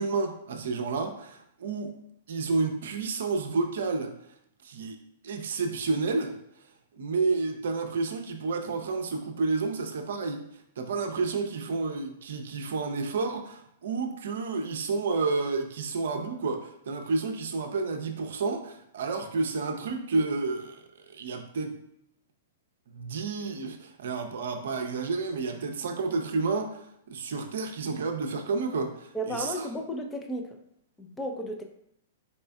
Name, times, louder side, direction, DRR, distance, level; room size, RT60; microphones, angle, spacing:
voice 1, 0.0-1.9 2.3-4.1 4.6-5.0 5.2-6.3 7.0-10.4 10.8-21.8 22.9-29.7, right 4 dB, 65° right, 5 dB, 0.6 m, -30 dB
voice 2, 29.1-30.6 31.0-31.6, equal, 10° left, 3 dB, 0.5 m, -34 dB
4.2 x 4.2 x 2.3 m, 0.74 s
figure-of-eight pair, 110°, 0 cm